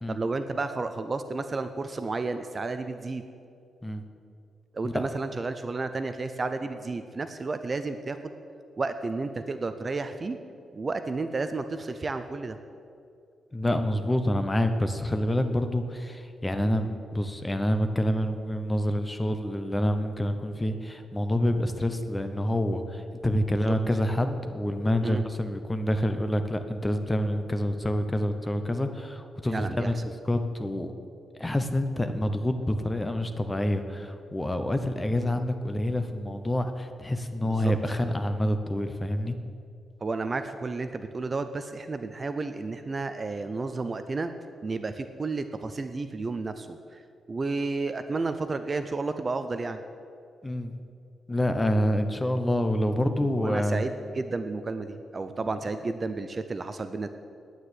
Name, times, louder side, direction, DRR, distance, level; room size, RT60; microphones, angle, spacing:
voice 1, 0.1-3.2 4.7-8.3 8.8-10.4 10.7-12.6 23.7-23.8 25.0-25.2 29.5-29.9 37.4-37.7 40.0-44.3 44.6-47.0 47.3-49.8 53.1-57.1, right 3 dB, 25° right, 9 dB, 0.5 m, -32 dB
voice 2, 13.5-30.9 31.4-39.3 50.4-50.8 51.3-53.8, left 1 dB, 10° left, 8 dB, 0.8 m, -27 dB
9.5 x 9.4 x 9.8 m, 2.4 s
wide cardioid pair, 160°, 0 cm